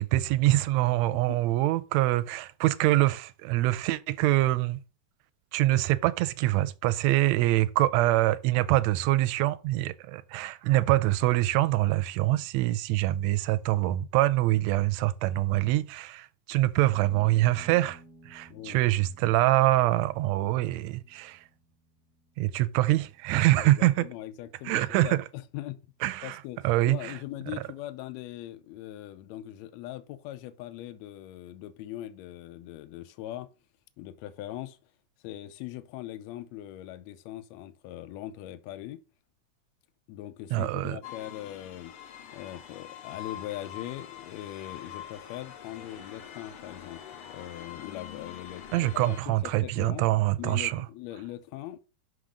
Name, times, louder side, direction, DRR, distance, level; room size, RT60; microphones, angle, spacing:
voice 1, 0.0-4.8 5.5-18.0 18.3-21.4 22.4-24.1 24.6-25.2 26.0-27.2 40.5-41.0 48.7-50.9, right 16 dB, 80° right, 1.6 m, -25 dB
sound 1, 16.9-25.9, right 1 dB, 25° right, 0.5 m, -57 dB
voice 2, 18.5-18.8 23.5-25.8 26.2-33.5 34.0-34.8 35.2-39.0 40.1-41.9 42.3-50.1 50.4-51.8, left 14 dB, 75° left, 1.7 m, -41 dB
sound 2, 41.0-49.2, left 10 dB, 60° left, 1.6 m, -44 dB
6.3 x 4.9 x 5.1 m
omnidirectional pair, 3.4 m